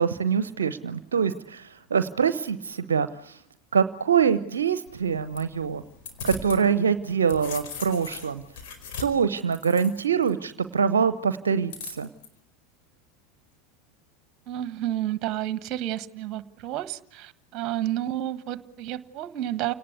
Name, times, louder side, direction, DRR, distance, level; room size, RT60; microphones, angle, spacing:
voice 1, 0.0-3.4 3.7-5.8 6.2-8.4 9.0-12.1, right 7 dB, 75° right, 13 dB, 0.8 m, -24 dB
sound 1, 4.9-6.6 7.0-10.3 11.7-12.3, left 6 dB, 55° left, 4.6 m, -39 dB
voice 2, 14.5-19.7, right 13 dB, 40° right, 13 dB, 1.5 m, -30 dB
29.5 x 19.0 x 8.1 m, 0.83 s
figure-of-eight pair, 80°, 0 cm